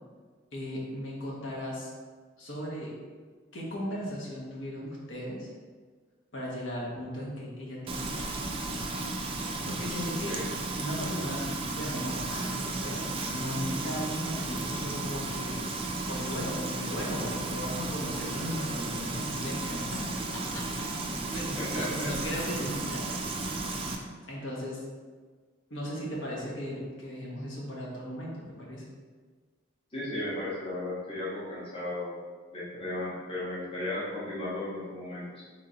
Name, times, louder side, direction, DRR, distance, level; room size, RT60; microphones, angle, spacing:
voice 1, 0.5-1.9 2.4-2.9 3.5-5.5 6.3-8.7 9.4-10.4 10.8-11.4 11.7-13.0 13.3-15.7 16.1-20.9 21.3-23.0 24.3-24.8 25.7-28.8, equal, 70° left, -4 dB, 1.0 m, -37 dB
Frying (food), 7.9-24.0, right 2 dB, 25° right, 0.3 m, -34 dB
voice 2, 21.6-22.1 29.9-32.2 32.5-35.4, left 1 dB, 30° left, -7 dB, 0.8 m, -35 dB
3.3 x 3.0 x 3.8 m, 1.5 s
head